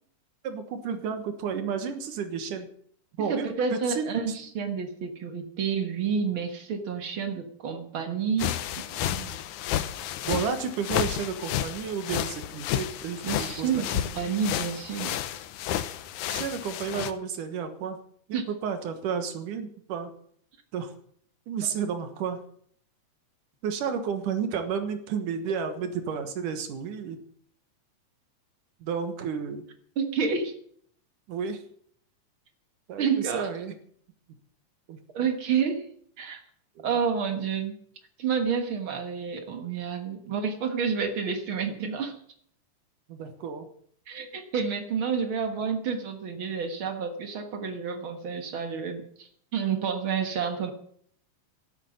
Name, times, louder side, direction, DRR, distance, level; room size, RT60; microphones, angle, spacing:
voice 1, 0.4-2.7 3.2-4.3 10.3-13.8 16.3-18.0 18.3-20.1 20.7-21.0 21.5-22.4 23.6-27.2 28.8-29.6 31.3-31.6 32.9-33.7 34.9-35.0 36.8-36.9 43.1-43.7, right 6 dB, 80° right, 8 dB, 2.9 m, -32 dB
voice 2, 3.2-9.4 13.2-15.2 18.3-18.5 30.0-30.5 33.0-33.5 35.1-35.9 36.2-36.4 36.8-37.8 38.2-42.1 44.1-50.7, right 6 dB, 50° right, 7 dB, 1.9 m, -29 dB
sound 1, 8.4-17.1, left 12 dB, 75° left, 2.2 m, -31 dB
13.0 x 8.8 x 8.0 m, 0.62 s
omnidirectional pair, 3.6 m